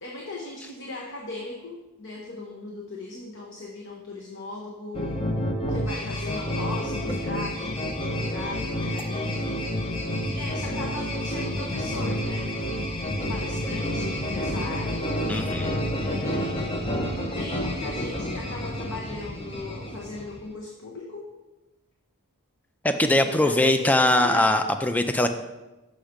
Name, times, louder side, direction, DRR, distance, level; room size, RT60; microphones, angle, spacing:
voice 1, 0.0-5.2 5.7-9.7 10.3-12.5 13.3-15.0 16.0-16.8 17.3-21.3 23.0-24.6, left 2 dB, 55° left, -1 dB, 0.9 m, -38 dB
sound 1, 4.9-20.5, equal, 25° left, 0.8 m, -29 dB
voice 2, 15.3-15.8 22.8-25.3, left 1 dB, 5° left, 8 dB, 0.3 m, -21 dB
6.3 x 5.8 x 5.1 m, 1.1 s
head